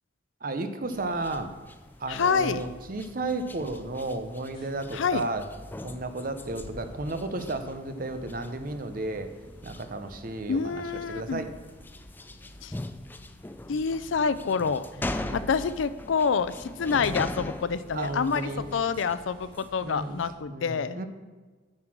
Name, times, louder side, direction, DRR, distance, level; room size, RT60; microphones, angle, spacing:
voice 1, 0.4-1.5 2.0-5.5 5.8-9.3 9.6-10.8 11.1-11.5 15.0-15.3 17.9-18.7 19.8-20.2 20.5-21.1, right 2 dB, 45° right, 9 dB, 0.7 m, -33 dB
sound 1, 0.8-20.4, equal, 30° left, 2.1 m, -54 dB
sound 2, 0.9-19.8, left 1 dB, 10° left, 0.3 m, -41 dB
voice 2, 2.1-2.6 4.9-5.2 10.5-11.4 12.6-12.7 13.7-14.8 15.3-21.0, left 5 dB, 85° left, 15 dB, 0.4 m, -27 dB
7.4 x 6.7 x 6.0 m, 1.3 s
head